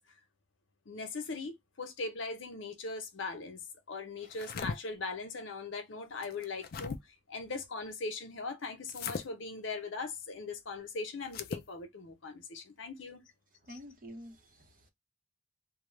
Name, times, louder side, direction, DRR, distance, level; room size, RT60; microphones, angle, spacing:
voice 1, 0.9-3.6 3.9-7.0 7.3-13.2, left 3 dB, 85° left, 0.7 m, -40 dB
sound 1, 4.2-4.8 6.2-7.0 8.9-9.3 11.2-11.7, left 5 dB, 50° left, 0.3 m, -39 dB
voice 2, 13.7-14.9, equal, 45° right, 0.6 m, -49 dB
2.3 x 2.0 x 2.9 m
head